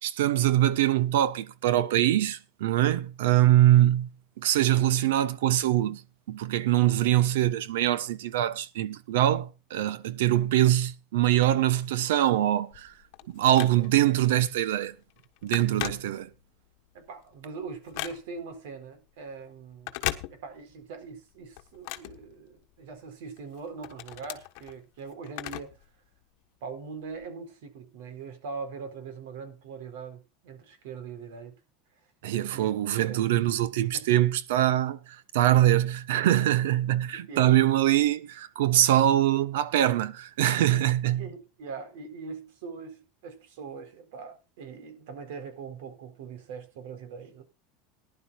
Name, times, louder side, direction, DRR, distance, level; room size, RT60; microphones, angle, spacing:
voice 1, 0.0-4.1 4.4-6.0 6.3-12.9 13.3-14.9 15.4-16.3 32.2-41.3, right 13 dB, 90° right, 1.1 m, -23 dB
Telephone, 12.7-14.1 14.6-14.8 15.1-16.6 17.0-18.5 19.7-20.8 21.1-22.9 23.4-25.9 26.2-26.3 27.1-27.2, left 17 dB, 60° left, 1.3 m, -38 dB
voice 2, 16.9-19.9 20.3-25.8 26.6-31.5 32.5-33.2 33.9-34.0 37.3-37.5 40.7-40.8 41.2-47.4, right 5 dB, 75° right, 4.2 m, -41 dB
19.5 x 11.0 x 2.5 m
supercardioid pair, 155°, 0 cm